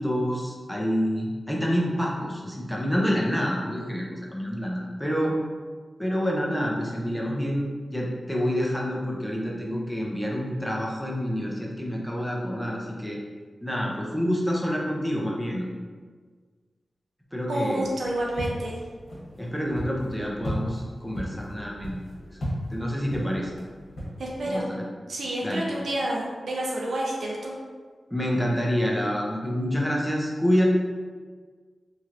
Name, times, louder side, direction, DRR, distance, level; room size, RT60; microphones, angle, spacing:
voice 1, 0.0-5.4 6.0-13.2 13.6-15.7 17.3-17.8 19.4-22.0 22.7-23.5 24.4-24.8 25.4-25.6 28.1-30.6, equal, ahead, -3 dB, 0.6 m, -27 dB
voice 2, 17.5-18.8 24.2-24.7 25.1-27.5, right 1 dB, 85° right, -3 dB, 0.5 m, -29 dB
sound 1, 17.8-24.6, equal, 60° left, 1.2 m, -36 dB
2.9 x 2.9 x 2.5 m, 1.5 s
cardioid pair, 65°, 0 cm